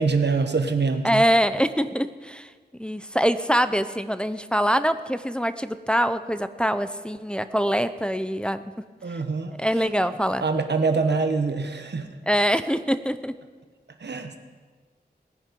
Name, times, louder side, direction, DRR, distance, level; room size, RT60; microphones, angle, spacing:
voice 1, 0.0-1.3 9.0-9.6 10.4-12.1 14.0-14.4, right 4 dB, 85° right, 7 dB, 1.1 m, -24 dB
voice 2, 1.0-2.5 2.8-8.6 9.1-9.2 9.6-10.5 12.3-13.3, equal, 5° left, 11 dB, 0.6 m, -24 dB
18.5 x 10.5 x 5.3 m, 1.5 s
wide cardioid pair, 50°, 17 cm